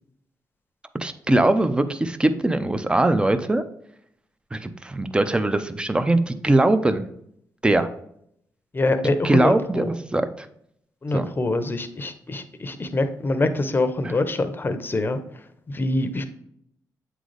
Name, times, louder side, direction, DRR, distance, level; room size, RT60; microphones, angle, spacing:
voice 1, 1.0-3.6 4.5-7.0 7.6-7.9 9.2-10.5 11.1-11.3, right 2 dB, 15° right, 10 dB, 0.5 m, -21 dB
voice 2, 8.7-9.9 11.0-16.3, left 2 dB, 30° left, 9 dB, 0.7 m, -25 dB
8.0 x 3.9 x 3.2 m, 0.72 s
cardioid pair, 85°, 7 cm